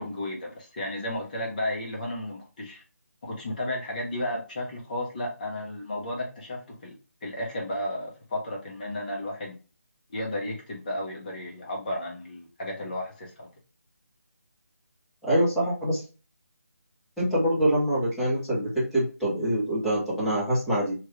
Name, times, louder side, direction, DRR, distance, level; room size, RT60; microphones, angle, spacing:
voice 1, 0.0-2.8 3.2-6.9 7.2-9.6 10.1-13.5, left 1 dB, 30° left, -1 dB, 0.8 m, -33 dB
voice 2, 15.2-16.0 17.2-20.9, equal, ahead, -9 dB, 0.9 m, -25 dB
3.1 x 2.4 x 3.0 m, 0.33 s
figure-of-eight pair, 165°, 9 cm